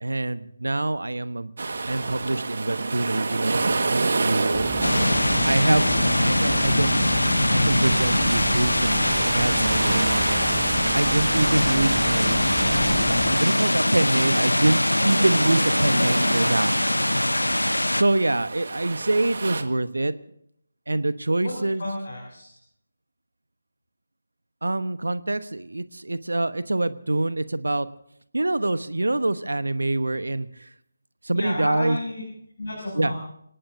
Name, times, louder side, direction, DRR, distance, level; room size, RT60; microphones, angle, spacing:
voice 1, 0.0-1.5 1.8-4.7 5.4-10.4 10.9-12.7 13.4-16.7 17.9-20.1 20.9-21.8 24.6-27.9 28.3-30.5 31.2-32.0 33.0-33.1, right 2 dB, 65° right, 14 dB, 1.0 m, -25 dB
sound 1, 1.6-19.6, right 3 dB, 50° right, 1.6 m, -31 dB
sound 2, 4.5-13.4, right 7 dB, 5° right, 0.6 m, -36 dB
sound 3, 4.8-18.0, left 1 dB, 80° left, 0.9 m, -22 dB
voice 2, 21.8-22.5 31.3-32.2 32.6-33.2, left 2 dB, 50° left, -3 dB, 6.8 m, -31 dB
29.5 x 18.0 x 2.7 m, 0.72 s
figure-of-eight pair, 150°, 0 cm